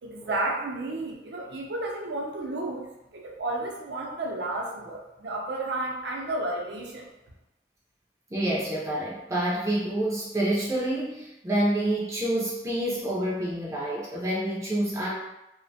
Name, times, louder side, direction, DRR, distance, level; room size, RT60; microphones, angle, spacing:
voice 1, 0.0-7.0, right 2 dB, 85° right, 0 dB, 0.5 m, -32 dB
voice 2, 8.3-15.1, right 1 dB, 15° right, -5 dB, 0.4 m, -28 dB
2.4 x 2.2 x 2.6 m, 0.90 s
head